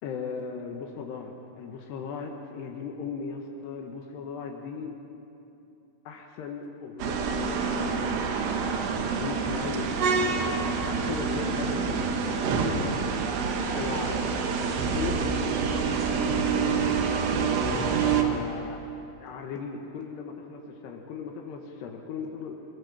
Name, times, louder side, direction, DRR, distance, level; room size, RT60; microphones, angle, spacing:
voice 1, 0.0-5.0 6.1-8.5 9.2-13.0 13.7-14.2 14.9-18.8 19.2-22.6, left 5 dB, 85° left, 1 dB, 3.5 m, -37 dB
sound 1, 7.0-18.2, right 5 dB, 90° right, 3.7 m, -27 dB
22.5 x 21.5 x 7.3 m, 2.9 s
omnidirectional pair, 4.7 m